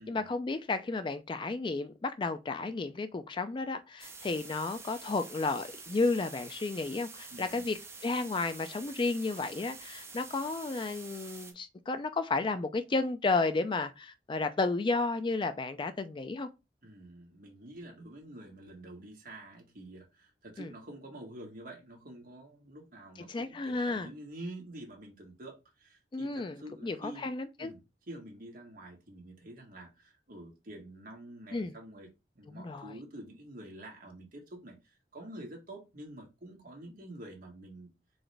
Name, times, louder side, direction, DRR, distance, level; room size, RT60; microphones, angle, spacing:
voice 1, 0.0-16.5 20.6-20.7 23.3-24.1 26.1-26.6 26.8-27.7 31.5-31.7 32.5-32.9, left 3 dB, 30° left, 0.4 m, -32 dB
sound 1, 4.0-11.5, right 4 dB, 15° right, 0.7 m, -48 dB
voice 2, 7.3-7.6 16.8-27.3 27.6-27.8 28.1-32.1 32.3-37.9, right 1 dB, 55° right, 1.7 m, -48 dB
4.0 x 3.9 x 3.3 m
head